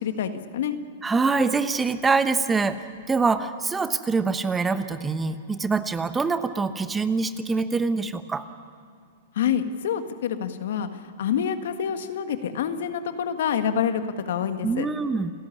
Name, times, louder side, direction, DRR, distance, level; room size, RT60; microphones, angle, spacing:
voice 1, 0.0-0.8 9.3-14.9, left 8 dB, 70° left, 8 dB, 1.6 m, -27 dB
voice 2, 1.0-8.5 14.6-15.3, right 4 dB, 15° right, 11 dB, 1.0 m, -24 dB
28.5 x 14.0 x 9.9 m, 2.1 s
hypercardioid pair, 120°, 0 cm